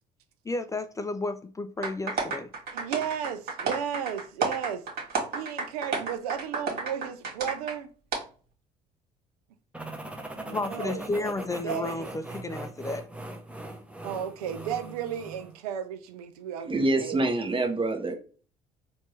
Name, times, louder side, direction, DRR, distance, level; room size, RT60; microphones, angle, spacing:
voice 1, 0.4-2.5 10.5-13.1, left 2 dB, 15° left, 0.4 m, -32 dB
sound 1, 1.8-7.8 8.1-8.2, right 4 dB, 55° right, 1.8 m, -31 dB
voice 2, 2.7-4.8 5.3-7.9 10.4-11.3 11.6-12.1 14.0-17.3, right 9 dB, 80° right, 0.5 m, -34 dB
sound 2, 9.7-15.6, right 1 dB, 5° right, 0.9 m, -40 dB
voice 3, 16.6-18.1, right 2 dB, 25° right, 1.2 m, -26 dB
4.3 x 2.6 x 3.2 m
hypercardioid pair, 55°, 19 cm